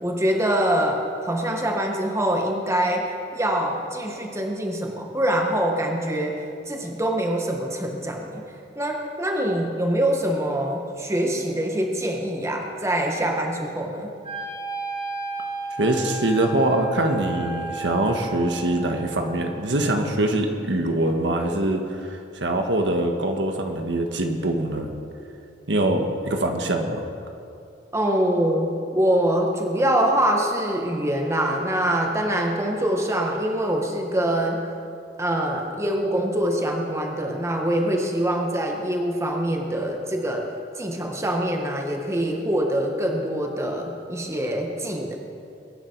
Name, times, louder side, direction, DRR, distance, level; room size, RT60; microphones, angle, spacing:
voice 1, 0.0-8.4 8.7-14.1 27.9-34.7 35.2-40.5 40.8-45.2, right 1 dB, 15° right, 1 dB, 1.5 m, -24 dB
Wind instrument woodwind instrument, 14.2-20.3, right 3 dB, 35° right, 2.9 m, -34 dB
voice 2, 15.8-24.9 25.7-27.0, right 1 dB, 75° right, 4 dB, 1.4 m, -23 dB
22.5 x 10.5 x 4.6 m, 2.5 s
head